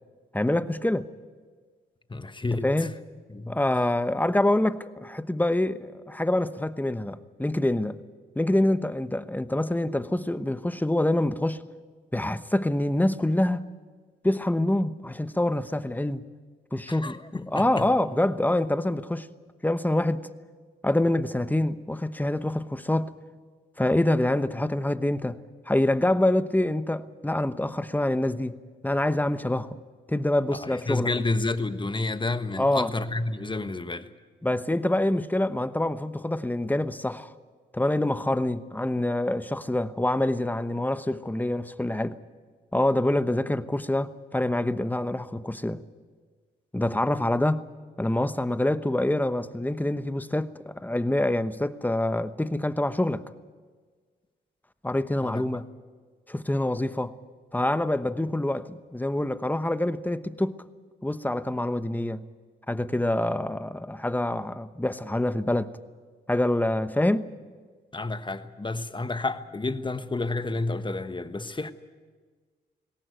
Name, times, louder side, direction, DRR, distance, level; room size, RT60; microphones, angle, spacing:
voice 1, 0.3-1.1 2.6-2.9 3.5-8.0 8.3-11.6 12.1-13.6 14.2-16.2 16.7-19.3 19.6-20.3 20.8-23.1 23.8-25.4 25.7-28.6 28.8-29.8 30.1-31.1 32.6-32.9 34.4-37.3 37.7-42.2 42.7-45.8 46.7-47.6 48.0-53.2 54.8-55.6 56.3-57.1 57.5-60.6 61.0-62.2 62.7-65.7 66.3-67.3, left 1 dB, 10° left, 1.0 m, -26 dB
voice 2, 2.1-2.7 3.3-3.6 16.9-17.8 30.6-34.1 55.2-55.6 67.9-71.7, left 2 dB, 25° left, 1.3 m, -30 dB
19.0 x 17.5 x 9.2 m
supercardioid pair, 55°, 20 cm